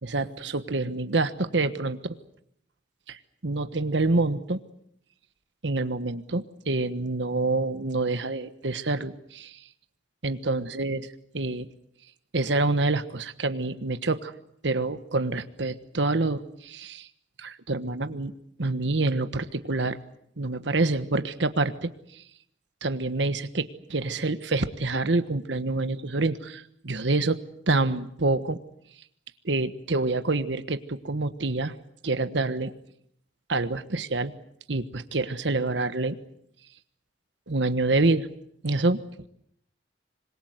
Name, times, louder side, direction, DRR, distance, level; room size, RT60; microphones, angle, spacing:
voice 1, 0.0-2.2 3.1-4.6 5.6-9.6 10.2-11.0 11.3-11.7 12.3-14.3 14.6-17.1 17.4-18.3 18.6-20.0 20.4-22.2 22.8-27.4 27.7-28.6 29.4-31.7 32.0-32.7 33.5-34.3 34.7-36.2 37.5-38.3 38.6-39.0, right 2 dB, 75° right, 11 dB, 1.3 m, -27 dB
26.5 x 22.0 x 8.0 m, 0.72 s
head